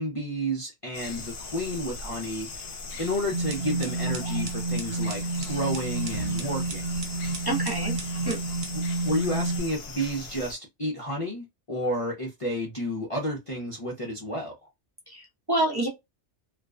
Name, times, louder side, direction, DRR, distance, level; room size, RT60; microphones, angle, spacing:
voice 1, 0.0-7.0 9.0-14.5, equal, 35° left, 0.6 m, -31 dB
sound 1, 0.9-10.5, left 4 dB, 60° left, 0.9 m, -39 dB
sound 2, 3.3-9.6, right 3 dB, 75° right, 1.0 m, -30 dB
voice 2, 7.5-7.9 8.3-8.4 15.1-15.9, right 2 dB, 25° right, 0.7 m, -27 dB
2.4 x 2.2 x 2.3 m
omnidirectional pair, 1.2 m